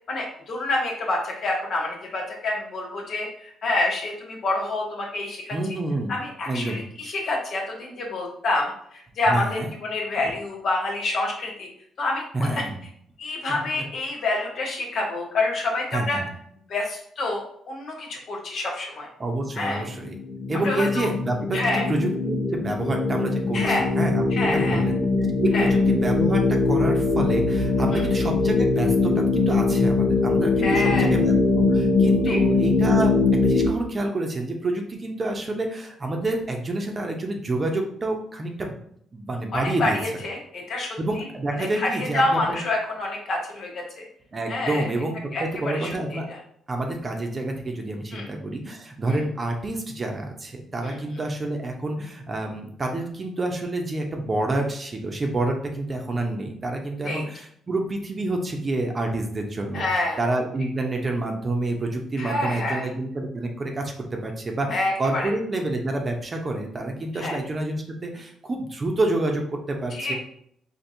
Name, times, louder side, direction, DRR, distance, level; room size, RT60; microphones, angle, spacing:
voice 1, 0.1-5.5 6.1-11.7 12.0-12.6 13.2-16.2 16.7-19.1 19.6-19.8 20.5-21.1 21.5-21.9 23.5-23.9 24.3-24.8 25.5-25.7 27.9-28.0 30.6-31.1 32.2-32.4 39.5-41.2 41.6-44.0 44.5-44.9 45.3-46.2 48.1-48.3 49.1-49.2 50.8-51.2 57.0-57.2 59.7-60.2 62.2-62.9 64.7-65.2 67.1-67.4 69.9-70.1, left 2 dB, 60° left, -1 dB, 1.1 m, -27 dB
voice 2, 5.5-6.2 6.5-6.8 9.3-9.7 10.2-10.3 12.3-12.8 13.6-13.7 15.9-16.3 19.2-20.2 20.5-33.1 33.4-38.8 39.1-40.0 41.0-42.6 44.3-46.3 46.7-70.1, right 2 dB, 35° right, 2 dB, 0.7 m, -28 dB
sound 1, 19.9-33.7, left 3 dB, 85° left, 0.8 m, -22 dB
4.3 x 2.8 x 2.7 m, 0.68 s
cardioid pair, 90°, 0 cm